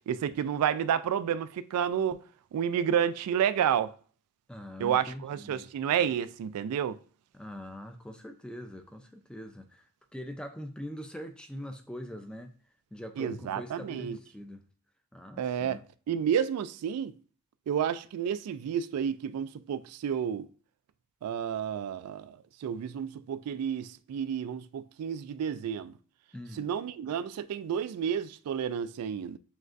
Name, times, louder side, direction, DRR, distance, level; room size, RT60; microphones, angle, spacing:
voice 1, 0.1-2.2 2.5-3.9 4.8-7.0 13.2-14.2 15.4-15.8 16.1-17.1 17.7-20.5 21.2-25.9 26.6-29.4, right 8 dB, 85° right, 0.3 m, -30 dB
voice 2, 4.5-5.7 7.3-9.8 10.1-12.5 12.9-14.6 15.1-15.8 26.3-26.7, equal, 5° left, 0.4 m, -42 dB
6.2 x 2.2 x 2.5 m
head